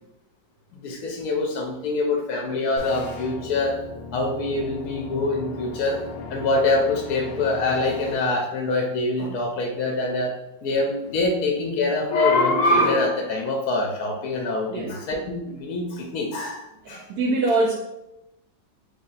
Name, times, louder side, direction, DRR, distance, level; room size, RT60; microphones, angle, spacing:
voice 1, 0.7-3.8 4.1-6.0 6.3-10.3 10.6-17.1, left 2 dB, 70° left, 1 dB, 0.9 m, -24 dB
sound 1, 2.8-8.1, left 3 dB, 90° left, 1.3 m, -37 dB
voice 2, 16.8-17.7, right 2 dB, 70° right, 0 dB, 0.9 m, -23 dB
3.3 x 2.7 x 3.9 m, 0.89 s
omnidirectional pair, 2.0 m